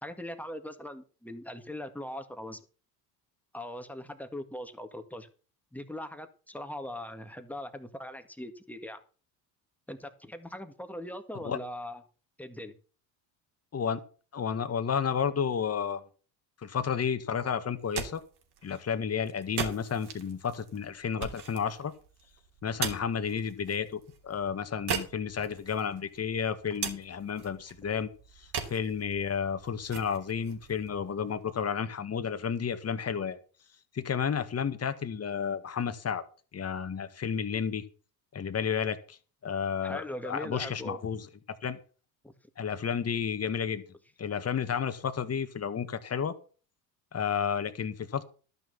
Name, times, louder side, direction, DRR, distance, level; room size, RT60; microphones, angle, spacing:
voice 1, 0.0-2.6 3.5-5.3 5.7-9.0 9.9-12.0 12.4-12.7 39.8-41.0 42.2-42.3, left 1 dB, 5° left, 8 dB, 1.8 m, -40 dB
voice 2, 14.3-16.0 16.6-18.2 18.6-21.9 22.6-28.1 28.4-33.4 33.9-36.2 36.5-37.8 38.3-39.2 39.4-41.3 41.6-41.8 42.6-43.8 44.2-46.4 47.1-48.2, left 7 dB, 30° left, 10 dB, 1.7 m, -31 dB
sound 1, 17.7-31.6, right 7 dB, 55° right, 3.1 m, -41 dB
12.0 x 6.2 x 7.1 m, 0.38 s
supercardioid pair, 80°, 48 cm